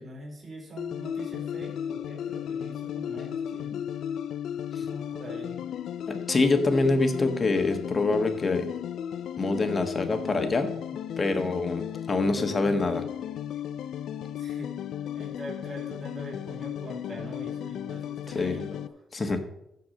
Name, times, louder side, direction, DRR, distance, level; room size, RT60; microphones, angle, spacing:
voice 1, 0.0-3.7 4.7-5.6 14.4-14.7 15.1-18.8, right 1 dB, 25° right, -3 dB, 4.5 m, -43 dB
sound 1, 0.8-18.9, left 9 dB, 70° left, 0.6 m, -35 dB
voice 2, 6.1-8.7 9.4-10.7 11.2-13.0 18.3-18.5 19.1-19.4, left 3 dB, 30° left, 7 dB, 1.5 m, -25 dB
14.0 x 4.7 x 6.4 m, 0.85 s
cardioid pair, 90°, 0 cm